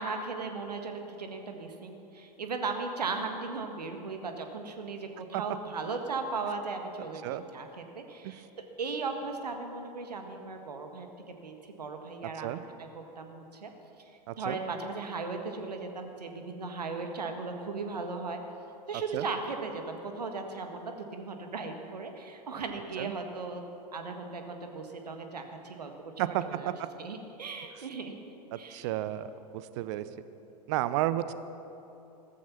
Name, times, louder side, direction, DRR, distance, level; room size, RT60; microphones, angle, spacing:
voice 1, 0.0-8.5 8.8-11.1 11.4-13.7 14.4-18.4 18.9-23.6 23.9-25.9 26.2-26.7 27.0-28.2 28.5-28.9, right 4 dB, 70° right, 5 dB, 1.6 m, -37 dB
voice 2, 14.3-14.6 18.9-19.3 23.0-23.1 26.2-26.7 28.7-29.3 29.5-30.1 30.7-31.3, right 14 dB, 45° right, 13 dB, 0.7 m, -32 dB
15.5 x 14.0 x 5.9 m, 2.9 s
figure-of-eight pair, 90°, 21 cm